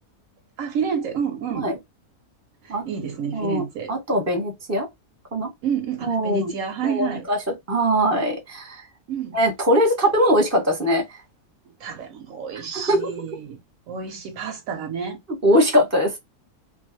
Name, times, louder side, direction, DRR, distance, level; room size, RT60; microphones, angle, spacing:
voice 1, 0.6-1.7 2.6-3.9 5.6-7.3 9.1-9.4 11.8-13.6 13.9-15.2, right 7 dB, 70° right, 0.9 m, -29 dB
voice 2, 3.3-3.6 3.9-4.9 5.3-5.5 6.1-6.4 6.8-7.4 7.7-8.8 9.3-11.0 12.7-13.1 15.4-16.1, equal, 15° right, 0.8 m, -21 dB
2.6 x 2.4 x 2.5 m
omnidirectional pair, 1.5 m